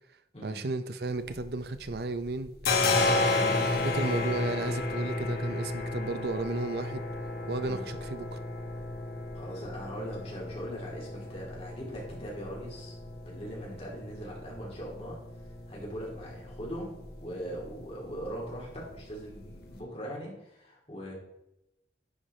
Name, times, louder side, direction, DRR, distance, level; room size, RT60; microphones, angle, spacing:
voice 1, 0.4-2.5 3.2-7.0 7.5-8.4, right 2 dB, 60° right, 11 dB, 0.6 m, -34 dB
sound 1, 1.1-2.0 2.3-19.8, left 2 dB, 60° left, 1.2 m, -33 dB
voice 2, 3.2-3.6 7.6-7.9 9.3-13.0 13.2-21.1, equal, 35° left, -3 dB, 2.6 m, -41 dB
9.9 x 4.6 x 4.3 m, 0.85 s
head